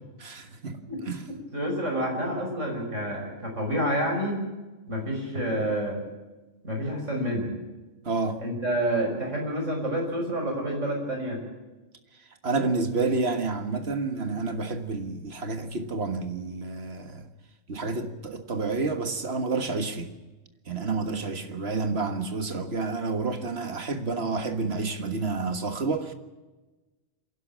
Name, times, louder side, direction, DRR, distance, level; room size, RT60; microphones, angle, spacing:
voice 1, 0.2-0.8 1.1-1.3 8.1-8.4 12.4-17.3 17.7-20.1 20.7-26.1, right 3 dB, 55° right, 1.9 m, -29 dB
voice 2, 1.5-4.4 4.9-6.0 6.6-7.5 8.4-11.4, right 1 dB, 75° right, 6.1 m, -28 dB
26.0 x 11.5 x 8.7 m
omnidirectional pair, 1.3 m